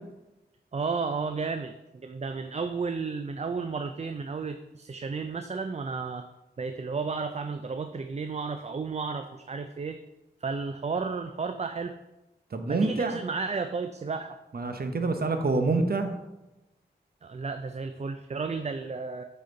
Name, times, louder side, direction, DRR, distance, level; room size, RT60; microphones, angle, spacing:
voice 1, 0.7-6.2 6.6-10.0 10.4-12.0 12.7-14.4 17.2-19.2, right 4 dB, 40° right, 8 dB, 0.4 m, -33 dB
voice 2, 12.5-13.2 14.5-16.1, right 3 dB, 60° right, 6 dB, 0.9 m, -27 dB
8.2 x 4.2 x 3.9 m, 0.97 s
cardioid pair, 50°, 18 cm